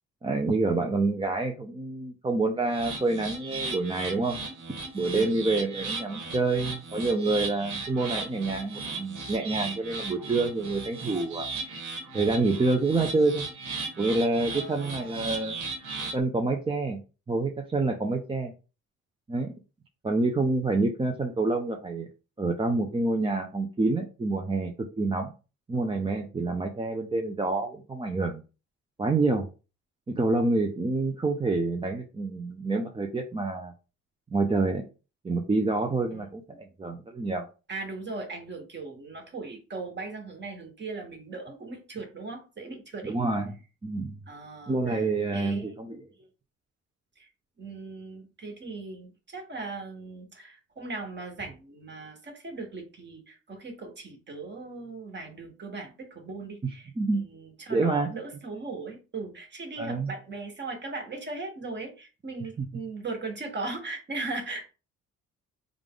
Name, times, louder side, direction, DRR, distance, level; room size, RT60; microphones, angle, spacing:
voice 1, 0.2-4.4 4.9-11.5 12.1-13.5 14.0-15.6 16.1-17.0 17.3-18.5 19.3-19.5 20.0-22.1 22.4-25.3 25.7-28.4 29.0-29.5 30.1-33.7 34.3-34.8 35.2-37.5 43.0-43.6 43.8-44.2 44.7-46.0 57.0-57.2 57.7-58.1 59.8-60.1, right 3 dB, 15° right, 3 dB, 0.5 m, -27 dB
sound 1, 2.7-16.2, right 3 dB, 90° right, 1.2 m, -37 dB
voice 2, 14.5-15.2 36.1-36.6 37.7-43.2 44.3-45.7 47.2-47.3 47.6-64.7, right 3 dB, 35° right, 3 dB, 1.3 m, -39 dB
3.7 x 2.4 x 3.6 m, 0.32 s
cardioid pair, 90°, 30 cm